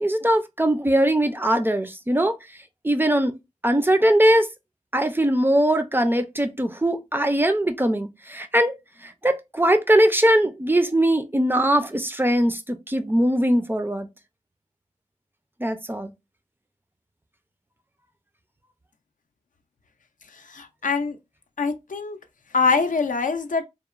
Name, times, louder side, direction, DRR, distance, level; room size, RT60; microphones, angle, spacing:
voice 1, 0.0-2.3 2.8-3.3 3.6-4.5 4.9-8.8 9.0-14.1 15.6-16.1, right 1 dB, 15° right, 0.4 m, -21 dB
voice 2, 20.5-21.2 21.6-22.2 22.5-23.6, left 4 dB, 75° left, 0.4 m, -23 dB
2.9 x 2.1 x 2.3 m
wide cardioid pair, 50°, 13 cm